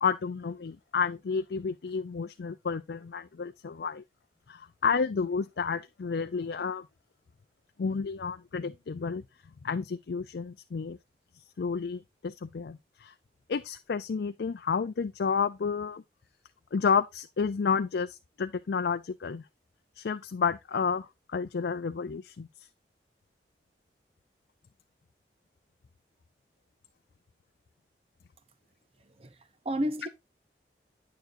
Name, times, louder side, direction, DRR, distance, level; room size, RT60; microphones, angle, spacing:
voice 1, 0.0-4.0 4.5-6.9 7.8-9.2 9.6-11.0 11.6-13.1 13.5-16.0 16.7-19.4 20.0-22.5, left 5 dB, 70° left, 0.4 m, -31 dB
voice 2, 29.0-30.1, equal, 35° right, 0.7 m, -33 dB
9.3 x 6.7 x 2.6 m
head